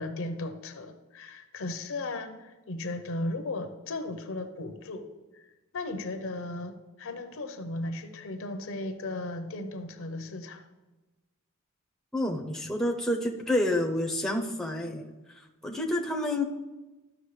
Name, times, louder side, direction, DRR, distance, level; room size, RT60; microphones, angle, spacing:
voice 1, 0.0-5.4 5.7-10.6, left 2 dB, 65° left, 8 dB, 0.8 m, -36 dB
voice 2, 12.1-16.4, left 1 dB, ahead, 1 dB, 0.7 m, -29 dB
12.5 x 6.3 x 3.2 m, 1.1 s
head